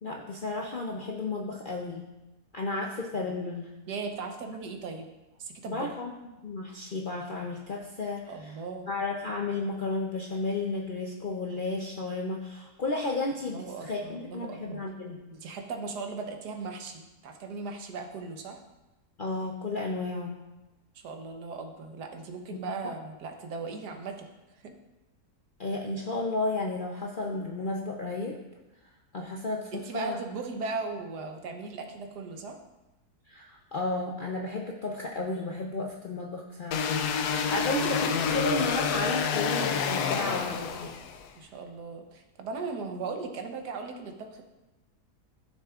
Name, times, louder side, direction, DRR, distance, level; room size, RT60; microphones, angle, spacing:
voice 1, 0.0-2.1 2.5-3.7 5.7-6.1 6.4-8.5 8.9-15.2 19.2-20.4 22.5-22.6 25.6-28.4 29.1-30.2 33.3-36.9 37.5-40.9, left 2 dB, 55° left, -1 dB, 0.5 m, -33 dB
voice 2, 3.9-5.1 5.4-5.9 8.3-8.9 13.5-14.8 15.3-18.6 21.0-24.3 24.6-24.7 29.7-32.6 37.6-37.7 41.3-44.4, right 4 dB, 80° right, 4 dB, 1.5 m, -38 dB
sound 1, 36.7-41.3, left 6 dB, 80° left, 1.2 m, -28 dB
12.5 x 6.3 x 2.4 m, 1.0 s
omnidirectional pair, 1.7 m